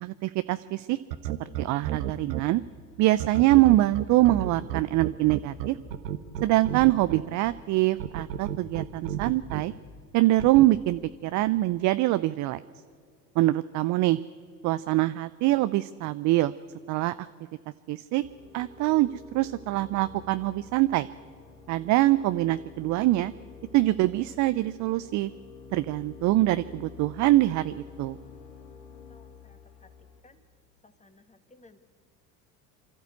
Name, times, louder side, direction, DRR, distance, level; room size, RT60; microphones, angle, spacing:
voice 1, 0.0-1.0 1.6-2.6 3.0-5.8 6.4-9.7 10.1-12.6 13.4-14.2 14.6-16.5 16.9-17.3 17.9-18.2 18.5-21.1 21.7-23.3 23.7-25.3 25.7-28.2, right 17 dB, 40° right, 14 dB, 0.5 m, -24 dB
sound 1, 1.1-2.4 3.2-7.2 8.0-9.6 10.4-10.7, right 11 dB, 75° right, 1.1 m, -31 dB
sound 2, 18.2-30.2, left 5 dB, 75° left, 2.5 m, -48 dB
voice 2, 29.1-29.9 30.2-30.4 30.8-31.8, left 3 dB, 15° left, 9 dB, 1.6 m, -58 dB
26.0 x 12.5 x 8.3 m, 2.1 s
hypercardioid pair, 75°, 50 cm